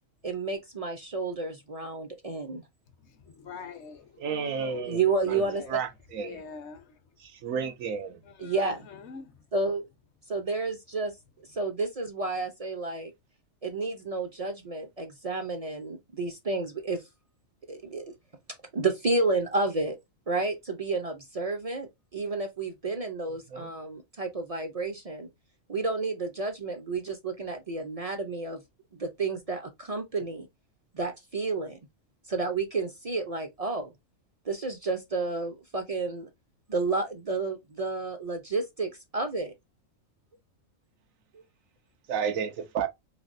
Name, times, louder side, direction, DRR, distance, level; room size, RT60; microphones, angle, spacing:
voice 1, 0.2-2.6 4.9-5.6 8.4-8.9 9.5-9.9 10.3-11.1 11.5-13.1 13.6-17.0 17.7-18.2 18.7-20.0 20.3-25.3 25.7-28.6 28.9-30.5 30.9-31.8 32.3-33.9 34.5-36.3 36.7-39.5 41.3-41.4, right 3 dB, 45° right, 0.4 m, -31 dB
voice 2, 3.0-4.9 5.2-5.8 6.2-6.9 8.2-9.4, left 6 dB, 65° left, 0.9 m, -43 dB
voice 3, 4.2-5.4 5.7-6.5 7.2-8.2 23.5-23.7 42.1-42.9, right 7 dB, 90° right, 1.2 m, -32 dB
3.3 x 3.2 x 2.5 m
omnidirectional pair, 1.4 m